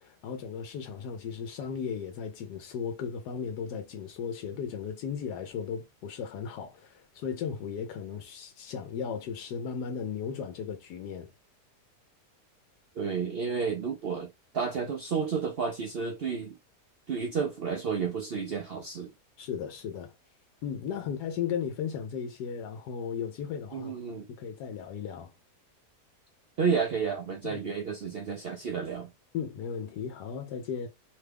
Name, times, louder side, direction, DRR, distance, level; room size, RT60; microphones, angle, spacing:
voice 1, 0.0-11.3 19.4-20.1 20.6-23.9 24.3-25.3 27.4-27.6 29.3-30.9, left 7 dB, 85° left, 1.2 m, -36 dB
voice 2, 13.0-14.3 14.5-16.5 17.1-19.1 23.7-24.3 26.6-29.1, right 6 dB, 70° right, 0.5 m, -31 dB
3.1 x 2.2 x 3.3 m
omnidirectional pair, 1.7 m